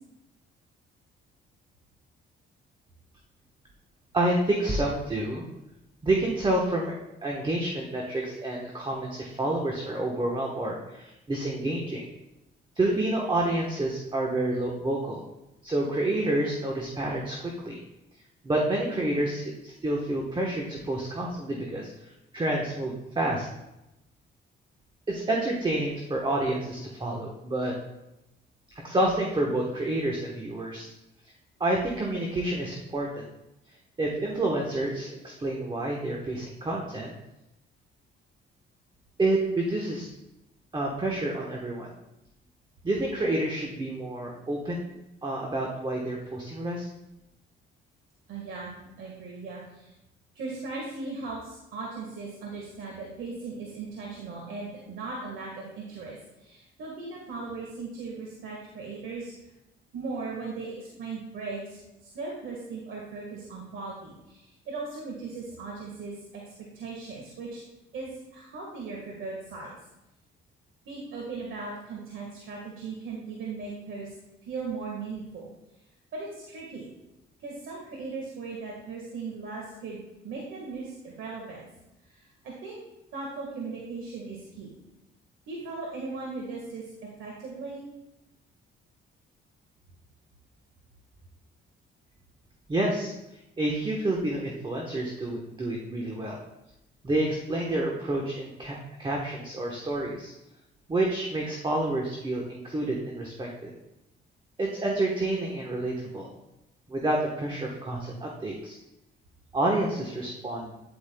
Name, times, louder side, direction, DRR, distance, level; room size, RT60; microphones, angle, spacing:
voice 1, 4.1-5.5 6.0-6.9 7.2-12.0 12.8-15.2 15.6-17.8 18.4-23.5 25.1-27.7 28.8-30.9 31.6-33.2 34.0-37.1 39.2-40.1 40.7-41.9 42.8-44.9 45.2-46.9 92.7-93.1 93.6-96.4 97.0-100.3 100.9-103.7 104.6-106.3 106.9-108.8 109.5-110.7, right 1 dB, 25° right, -1 dB, 1.2 m, -29 dB
voice 2, 48.3-48.7 49.0-49.9 50.3-59.3 59.9-66.4 66.7-67.6 67.9-69.7 70.8-74.1 74.5-75.4 76.1-76.9 77.4-81.7 82.0-82.8 83.1-84.7 85.5-86.8 87.2-87.9, right 4 dB, 80° right, -2 dB, 1.7 m, -38 dB
9.5 x 8.4 x 2.3 m, 0.91 s
cardioid pair, 90°, 20 cm